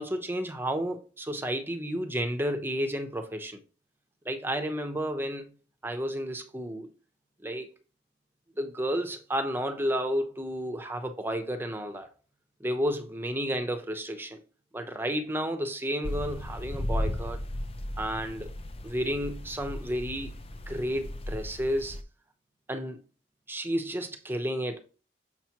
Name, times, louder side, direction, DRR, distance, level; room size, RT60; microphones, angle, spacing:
voice 1, 0.0-3.6 4.2-5.5 5.8-6.9 7.4-7.7 8.6-12.1 12.6-14.4 14.7-17.4 18.0-18.5 18.8-20.3 20.7-22.0 22.7-23.0 23.5-24.8, equal, 10° right, 0.7 m, -31 dB
sound 1, 16.0-22.0, left 1 dB, 30° left, 0.5 m, -35 dB
6.6 x 5.8 x 2.9 m
head